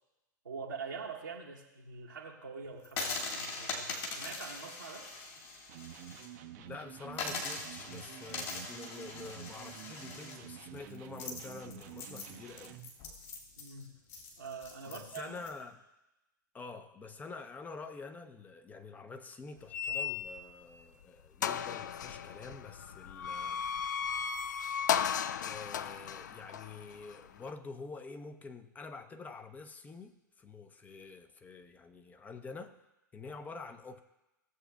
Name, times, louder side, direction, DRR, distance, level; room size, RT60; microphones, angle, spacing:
voice 1, 0.4-5.1 13.6-14.0 14.4-15.4, right 5 dB, 80° right, -3 dB, 1.1 m, -44 dB
sound 1, 2.8-6.3 6.6-6.7 7.1-15.5, left 3 dB, 40° left, 2.1 m, -41 dB
Electric guitar, 5.7-13.0, right 11 dB, 45° right, 0.6 m, -49 dB
voice 2, 6.6-12.8 14.8-15.8 16.5-23.6 25.4-32.8 33.1-34.0, left 4 dB, 15° left, 8 dB, 0.6 m, -47 dB
sound 2, 19.7-20.6 21.0-21.1 21.4-27.5, left 8 dB, 65° left, 0.4 m, -35 dB
17.0 x 7.7 x 2.3 m, 0.98 s
figure-of-eight pair, 95°, 11 cm